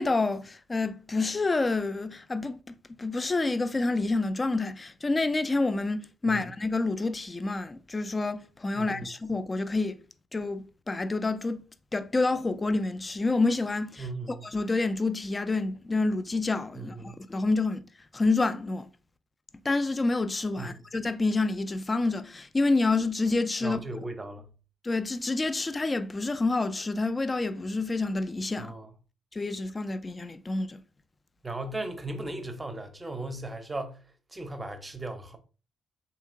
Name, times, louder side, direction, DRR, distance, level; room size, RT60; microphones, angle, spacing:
voice 1, 0.0-10.0 10.3-11.6 11.9-14.1 14.5-17.8 18.1-18.9 19.6-23.8 24.8-28.7 29.3-30.8, left 3 dB, 25° left, 0.3 m, -28 dB
voice 2, 8.7-9.1 14.0-14.5 16.7-17.2 20.6-20.8 23.6-24.4 28.6-28.9 31.4-34.0 34.3-35.4, right 2 dB, 20° right, 0.6 m, -37 dB
3.5 x 2.8 x 2.5 m
figure-of-eight pair, 40°, 0 cm